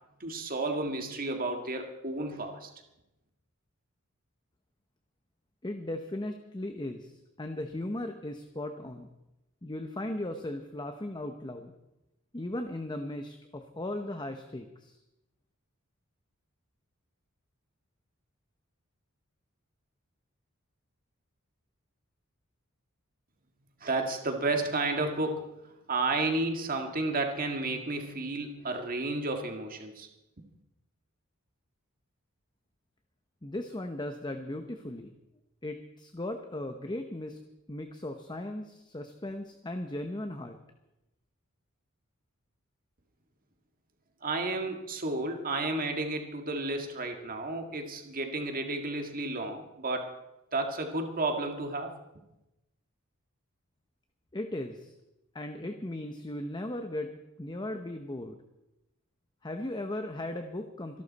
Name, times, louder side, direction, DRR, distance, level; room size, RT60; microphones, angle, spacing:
voice 1, 0.2-2.7 23.8-30.1 44.2-50.1 50.5-52.0, right 2 dB, 40° right, 4 dB, 1.9 m, -32 dB
voice 2, 5.6-9.1 9.6-11.8 12.3-15.0 33.4-35.1 35.6-37.4 37.7-40.6 54.3-54.9 55.3-58.4 59.4-61.0, left 1 dB, 20° left, 6 dB, 0.9 m, -37 dB
26.0 x 12.0 x 4.2 m, 0.93 s
head